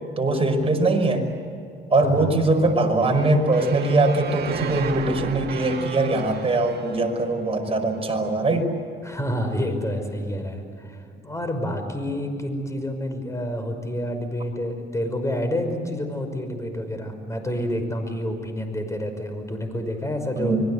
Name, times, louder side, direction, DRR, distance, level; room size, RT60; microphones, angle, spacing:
voice 1, 0.2-1.2 1.9-8.7 20.4-20.6, right 2 dB, 30° right, 3 dB, 5.3 m, -21 dB
voice 2, 2.0-2.4 9.0-20.6, equal, 15° left, 6 dB, 5.6 m, -28 dB
sound 1, 3.0-8.1, right 6 dB, 55° right, 2.1 m, -34 dB
26.0 x 22.5 x 8.2 m, 2.5 s
cardioid pair, 90°, 20 cm